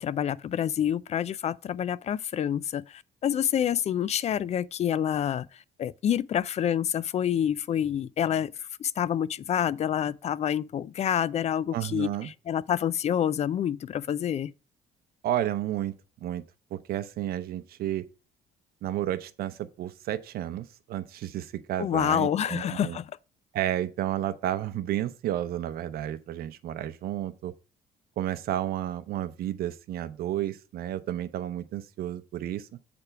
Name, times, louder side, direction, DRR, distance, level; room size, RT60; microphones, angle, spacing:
voice 1, 0.0-14.5 21.8-23.1, left 9 dB, 40° left, 0.4 m, -28 dB
voice 2, 11.7-12.3 15.2-15.9 16.2-16.4 16.7-18.1 18.8-23.0 23.5-27.5 28.2-32.7, right 12 dB, 65° right, 0.7 m, -31 dB
7.9 x 3.4 x 5.8 m
cardioid pair, 90°, 17 cm